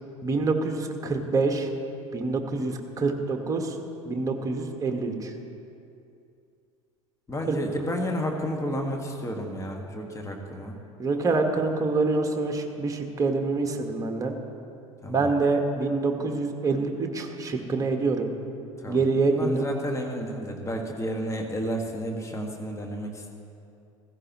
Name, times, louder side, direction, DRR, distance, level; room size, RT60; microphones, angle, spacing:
voice 1, 0.2-1.7 2.1-3.8 4.0-5.3 7.5-7.6 11.0-14.3 15.1-18.3 18.9-19.6, right 3 dB, 20° right, 3 dB, 1.4 m, -26 dB
voice 2, 7.3-10.8 15.0-15.3 18.8-23.3, equal, 15° left, 2 dB, 1.7 m, -31 dB
15.5 x 15.0 x 3.0 m, 2.6 s
figure-of-eight pair, 70°, 17 cm